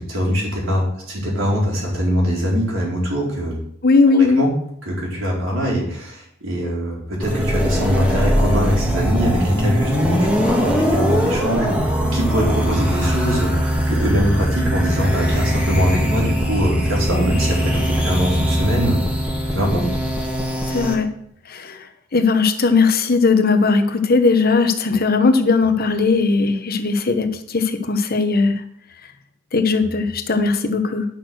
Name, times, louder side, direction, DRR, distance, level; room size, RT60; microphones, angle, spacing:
voice 1, 0.0-3.6 4.1-4.5 4.8-19.0 19.5-19.9, equal, 80° right, -4 dB, 4.7 m, -22 dB
voice 2, 3.8-4.4 20.7-21.1 21.5-21.9 22.1-28.6 29.5-31.0, left 4 dB, 50° left, 8 dB, 1.1 m, -18 dB
sound 1, 7.2-20.9, equal, 5° right, 1.7 m, -21 dB
9.4 x 6.3 x 6.3 m, 0.68 s
head